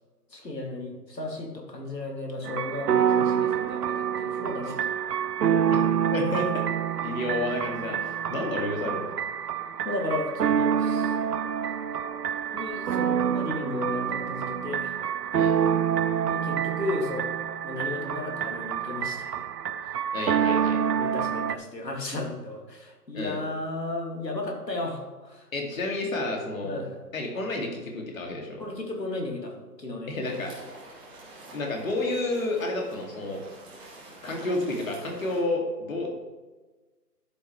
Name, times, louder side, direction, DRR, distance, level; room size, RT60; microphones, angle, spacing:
voice 1, 0.3-4.8 9.8-11.1 12.5-14.9 16.2-17.3 17.6-19.4 20.9-25.5 26.6-26.9 28.6-30.1, left 2 dB, 90° left, 1 dB, 2.7 m, -34 dB
sound 1, 2.4-21.6, right 8 dB, 75° right, 0.6 m, -27 dB
voice 2, 6.1-6.7 7.0-9.1 15.3-15.5 20.1-20.8 23.1-23.4 25.5-26.8 27.1-28.7 30.1-30.5 31.5-33.4 34.2-36.1, left 2 dB, 55° left, 1 dB, 2.5 m, -30 dB
sound 2, 30.2-35.4, right 2 dB, 10° right, 1.4 m, -47 dB
13.0 x 7.9 x 3.3 m, 1.3 s
figure-of-eight pair, 150°, 48 cm